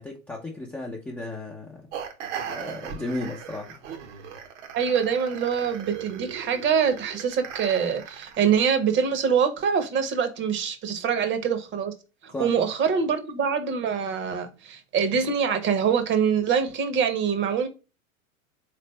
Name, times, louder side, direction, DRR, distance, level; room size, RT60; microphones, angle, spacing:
voice 1, 0.0-1.9 2.5-3.7 12.3-12.5, left 2 dB, 5° left, 0.4 m, -34 dB
sound 1, 1.9-8.7, right 7 dB, 55° right, 0.9 m, -38 dB
voice 2, 4.7-11.9 12.2-17.7, right 7 dB, 25° right, 0.8 m, -24 dB
3.9 x 3.4 x 3.0 m
hypercardioid pair, 100°, 43 cm